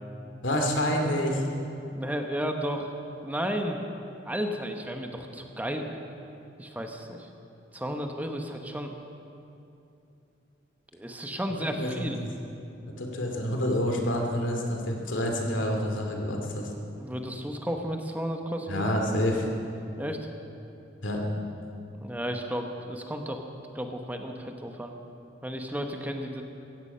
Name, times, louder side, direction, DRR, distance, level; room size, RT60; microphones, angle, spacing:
voice 1, 0.4-1.4 11.8-12.3 13.0-16.7 18.7-19.5 21.0-21.2, equal, 90° left, 1 dB, 2.6 m, -28 dB
voice 2, 1.9-2.9 3.2-3.8 4.2-6.0 6.6-7.3 7.7-8.9 10.9-12.2 17.0-18.9 20.0-20.2 22.0-23.4 23.7-24.9 25.4-26.4, equal, 10° right, 4 dB, 1.1 m, -33 dB
17.0 x 15.5 x 5.6 m, 2.7 s
head